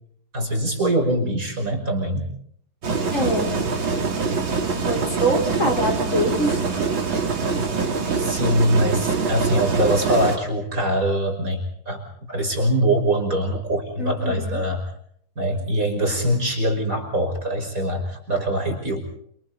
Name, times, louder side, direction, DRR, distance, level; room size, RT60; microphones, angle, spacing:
voice 1, 0.3-2.3 8.2-14.8 15.4-19.0, right 1 dB, 40° right, 2 dB, 5.9 m, -23 dB
sound 1, 2.8-10.4, right 4 dB, 65° right, 3.3 m, -24 dB
voice 2, 3.1-3.6 4.8-6.6 7.5-7.7 14.0-14.6, right 1 dB, 35° left, 2 dB, 4.9 m, -24 dB
28.5 x 27.5 x 4.1 m, 0.66 s
omnidirectional pair, 2.3 m